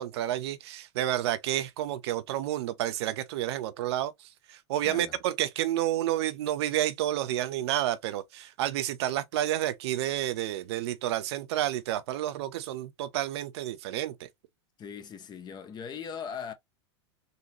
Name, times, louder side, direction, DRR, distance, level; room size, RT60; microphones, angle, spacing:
voice 1, 0.0-4.1 4.5-14.3, right 13 dB, 65° right, 0.5 m, -30 dB
voice 2, 4.8-5.2 14.8-16.5, left 7 dB, 30° left, 0.8 m, -39 dB
3.8 x 2.8 x 2.8 m
hypercardioid pair, 95°, 15 cm